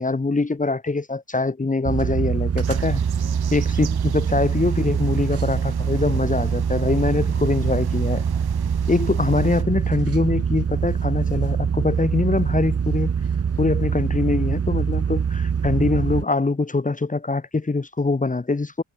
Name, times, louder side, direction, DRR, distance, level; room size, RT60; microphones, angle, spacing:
voice 1, 0.0-3.0 3.5-8.2 8.9-13.1 13.6-18.8, left 3 dB, 20° left, 2.0 m, -23 dB
sound 1, 1.8-16.2, right 7 dB, 35° right, 1.4 m, -23 dB
sound 2, 2.6-9.6, right 10 dB, 60° right, 4.4 m, -43 dB
cardioid pair, 95°, 42 cm